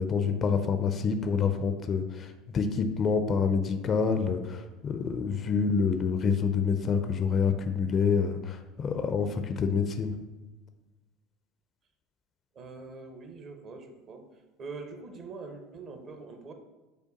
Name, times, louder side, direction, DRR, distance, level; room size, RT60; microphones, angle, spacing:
voice 1, 0.0-10.1, left 5 dB, 40° left, 8 dB, 0.4 m, -27 dB
voice 2, 12.5-14.3 14.6-16.5, right 4 dB, 45° right, 5 dB, 0.7 m, -43 dB
5.1 x 2.2 x 4.0 m, 1.2 s
hypercardioid pair, 75°, 0 cm